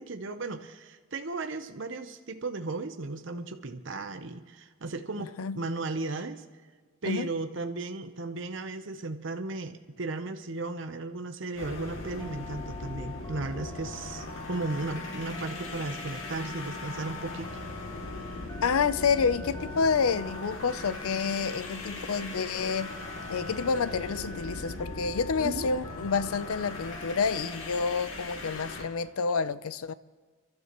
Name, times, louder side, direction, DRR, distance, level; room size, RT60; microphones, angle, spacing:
voice 1, 0.0-6.4 7.0-17.6 18.3-18.4 25.4-25.7, right 3 dB, 60° right, 0.8 m, -35 dB
voice 2, 5.2-5.6 7.0-7.3 18.6-22.9 23.3-29.9, left 5 dB, 85° left, 0.5 m, -29 dB
sound 1, 11.5-28.9, left 2 dB, 65° left, 2.2 m, -40 dB
Telephone, 12.2-27.9, left 4 dB, 15° left, 0.6 m, -47 dB
sound 2, 14.8-24.9, equal, 5° right, 2.0 m, -48 dB
29.5 x 12.5 x 3.0 m
head